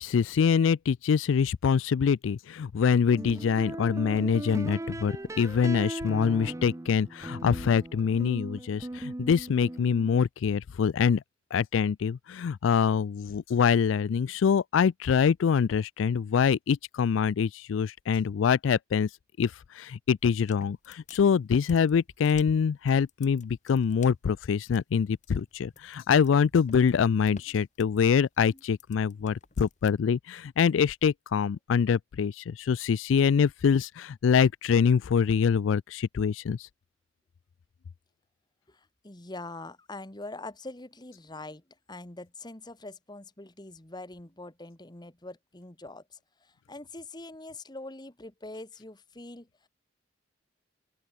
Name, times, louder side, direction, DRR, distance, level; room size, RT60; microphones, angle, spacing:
voice 1, 0.0-11.2 11.5-19.1 19.4-36.7, left 6 dB, 85° left, 0.4 m, -25 dB
sound 1, 3.1-10.2, right 1 dB, 15° right, 0.5 m, -38 dB
sound 2, 20.2-30.0, left 4 dB, 40° left, 1.7 m, -52 dB
voice 2, 38.7-49.7, left 2 dB, 20° left, 1.6 m, -44 dB
open air
head